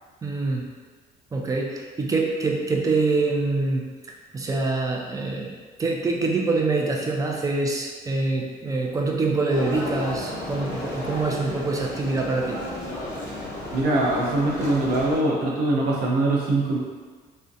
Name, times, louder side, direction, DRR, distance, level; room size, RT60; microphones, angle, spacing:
voice 1, 0.2-0.7 1.3-3.8 4.3-5.5 5.8-12.6, right 3 dB, 20° right, 0 dB, 0.4 m, -25 dB
sound 1, 9.5-15.2, left 1 dB, 15° left, 0.7 m, -33 dB
voice 2, 13.7-16.8, right 2 dB, 70° right, -3 dB, 0.6 m, -23 dB
2.4 x 2.1 x 2.6 m, 1.5 s
cardioid pair, 110°, 17 cm